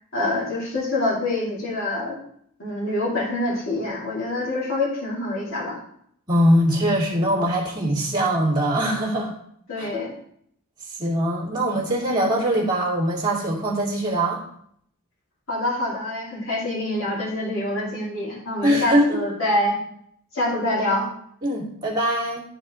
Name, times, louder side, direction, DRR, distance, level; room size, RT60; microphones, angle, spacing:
voice 1, 0.1-2.2 2.6-5.8 9.7-10.1 15.5-19.8 20.3-21.1, left 1 dB, 65° left, -6 dB, 2.7 m, -25 dB
voice 2, 6.3-9.3 9.8-9.9 11.0-14.4 18.6-19.2 21.4-22.4, equal, 20° right, -5 dB, 2.2 m, -22 dB
10.5 x 4.8 x 3.7 m, 0.67 s
head